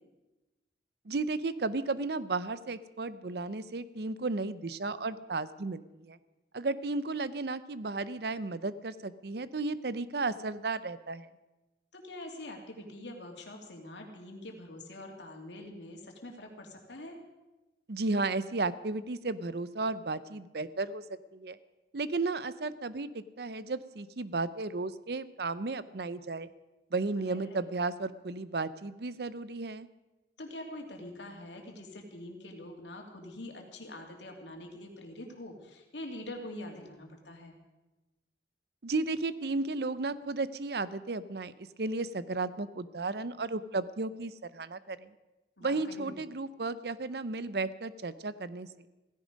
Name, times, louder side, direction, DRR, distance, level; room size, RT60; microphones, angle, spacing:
voice 1, 1.1-6.2 6.5-11.3 17.9-21.0 21.3-21.6 21.9-26.5 26.9-29.9 38.8-45.1 45.6-48.9, right 3 dB, 65° right, 15 dB, 0.7 m, -34 dB
voice 2, 11.9-17.2 27.2-27.6 30.4-37.6 45.6-46.2, left 1 dB, 90° left, 2 dB, 2.7 m, -45 dB
16.5 x 15.5 x 5.2 m, 1.1 s
head